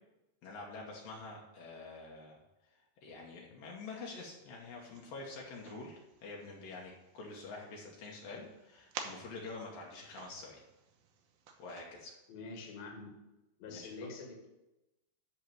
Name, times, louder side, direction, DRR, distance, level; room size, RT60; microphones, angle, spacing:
voice 1, 0.4-2.4 2.7-10.6 11.6-12.1 13.7-14.1, left 3 dB, 70° left, -2 dB, 2.7 m, -47 dB
sound 1, 4.1-11.9, right 6 dB, 75° right, 2.6 m, -52 dB
voice 2, 12.3-13.1 13.6-14.5, left 3 dB, 50° left, 1 dB, 2.4 m, -46 dB
10.5 x 3.9 x 7.6 m, 0.96 s
omnidirectional pair, 4.3 m